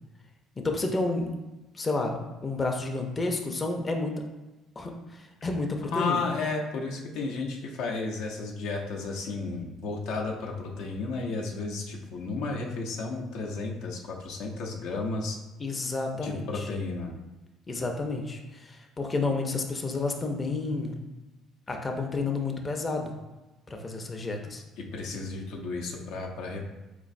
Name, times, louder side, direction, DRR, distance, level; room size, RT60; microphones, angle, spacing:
voice 1, 0.6-1.3 1.7-4.2 4.8-6.2 15.6-16.7 17.7-21.0 21.7-23.1 23.7-24.6, left 3 dB, 25° left, 3 dB, 0.5 m, -30 dB
voice 2, 5.9-15.4 16.1-17.1 24.8-26.7, left 3 dB, 80° left, 0 dB, 0.5 m, -33 dB
4.1 x 3.0 x 2.5 m, 1.1 s
supercardioid pair, 90°, 0 cm